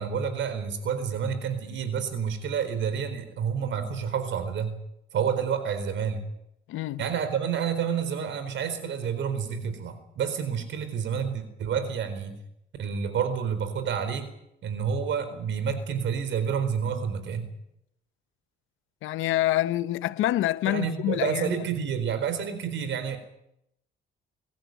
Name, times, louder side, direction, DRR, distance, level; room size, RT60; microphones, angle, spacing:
voice 1, 0.0-4.7 5.1-6.2 7.0-12.4 12.8-14.3 14.6-17.5 20.7-23.2, right 7 dB, 70° right, 4.3 m, -29 dB
voice 2, 6.7-7.0 19.0-21.6, left 14 dB, 85° left, 0.8 m, -26 dB
23.0 x 14.0 x 9.4 m
cardioid pair, 90°, 20 cm